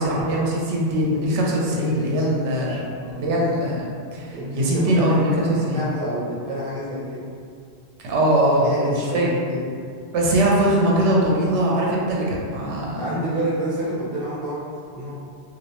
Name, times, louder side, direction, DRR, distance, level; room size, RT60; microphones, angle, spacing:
voice 1, 0.0-2.8 3.2-5.8 8.0-9.3 10.1-13.0, right 1 dB, 90° right, -4 dB, 0.9 m, -21 dB
voice 2, 2.1-3.5 4.3-7.3 8.6-9.8 13.0-14.6 14.9-15.1, right 1 dB, 35° right, -8 dB, 0.7 m, -28 dB
2.5 x 2.0 x 2.8 m, 2.2 s
omnidirectional pair, 1.2 m